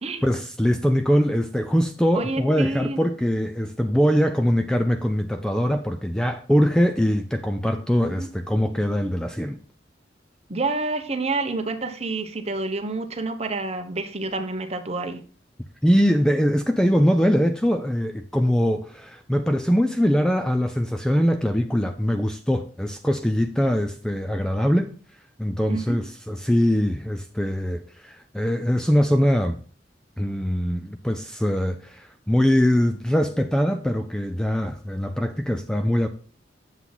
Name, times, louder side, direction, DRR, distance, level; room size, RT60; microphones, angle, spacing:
voice 1, 0.2-9.6 15.8-24.9 25.4-29.6 30.2-36.1, equal, 5° left, 0.4 m, -22 dB
voice 2, 2.1-3.0 8.1-8.3 10.5-15.2 25.7-26.0, right 3 dB, 35° right, 1.0 m, -28 dB
8.1 x 7.3 x 4.0 m
head